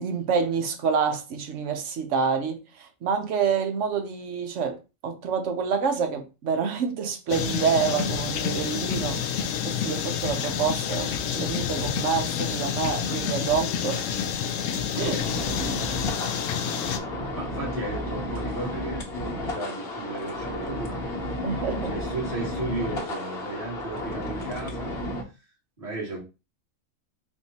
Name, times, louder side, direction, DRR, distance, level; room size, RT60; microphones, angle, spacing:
voice 1, 0.0-4.8 5.0-9.2 9.6-14.2 14.9-15.2 15.6-15.8 21.4-21.9, right 6 dB, 60° right, 1.0 m, -27 dB
sound 1, 7.3-17.0, left 7 dB, 70° left, 0.9 m, -28 dB
sound 2, 15.2-25.2, left 1 dB, 50° left, 1.2 m, -32 dB
voice 2, 17.3-21.3 21.8-24.9 25.8-26.2, right 2 dB, 25° right, 1.9 m, -35 dB
3.6 x 2.6 x 4.2 m
omnidirectional pair, 1.5 m